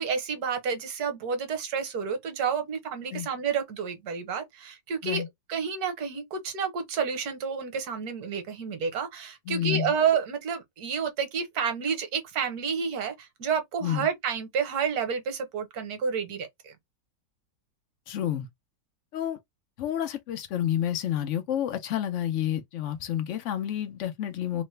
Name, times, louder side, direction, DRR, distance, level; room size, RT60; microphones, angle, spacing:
voice 1, 0.0-16.7, right 6 dB, 65° right, 1.3 m, -30 dB
voice 2, 9.5-9.9 13.8-14.1 18.1-18.5 19.1-19.4 19.8-24.6, left 11 dB, 85° left, 0.6 m, -29 dB
3.1 x 2.1 x 3.1 m
omnidirectional pair, 1.9 m